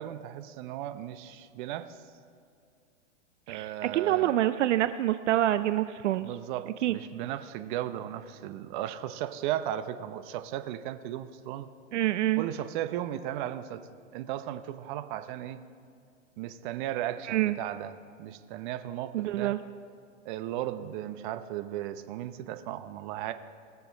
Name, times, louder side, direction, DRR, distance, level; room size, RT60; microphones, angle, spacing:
voice 1, 0.0-2.0 3.5-4.3 6.2-11.7 12.4-13.8 14.1-15.6 16.4-19.5 20.2-23.3, right 12 dB, 40° right, 10 dB, 0.8 m, -36 dB
voice 2, 3.5-6.3 6.8-7.0 11.9-12.4 17.2-17.6 19.1-19.6, right 13 dB, 75° right, 12 dB, 0.5 m, -26 dB
20.5 x 7.0 x 4.0 m, 2.3 s
hypercardioid pair, 125°, 37 cm